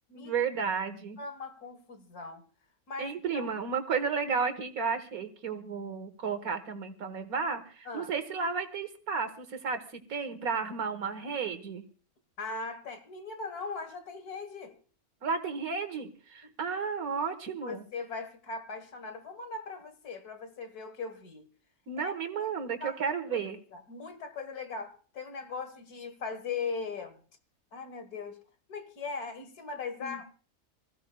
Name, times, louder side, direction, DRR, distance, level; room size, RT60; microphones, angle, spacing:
voice 1, 0.1-1.2 3.0-11.8 15.2-17.9 21.9-23.6 30.0-30.2, right 5 dB, 75° right, 1.9 m, -33 dB
voice 2, 1.2-2.4 2.9-3.5 7.9-8.1 12.4-14.7 16.4-16.5 17.6-21.4 22.0-22.5 22.8-23.0 23.3-23.4 23.7-27.2 27.7-28.4 28.7-30.3, left 4 dB, 85° left, 2.1 m, -39 dB
25.5 x 15.5 x 2.3 m
omnidirectional pair, 1.6 m